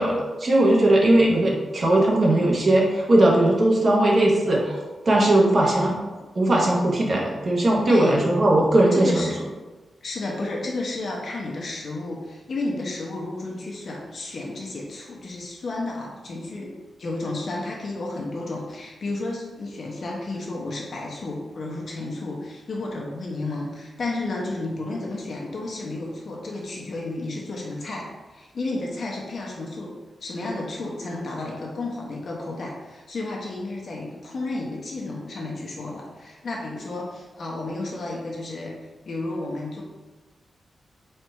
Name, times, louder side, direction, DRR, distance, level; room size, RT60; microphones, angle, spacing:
voice 1, 0.0-4.8 5.0-6.0 6.3-9.3, right 1 dB, 35° right, -2 dB, 0.9 m, -19 dB
voice 2, 7.9-8.2 8.9-9.4 10.0-29.9 30.2-38.7 39.0-39.8, left 2 dB, 50° left, -2 dB, 0.7 m, -32 dB
4.4 x 2.5 x 4.3 m, 1.2 s
wide cardioid pair, 155°, 0 cm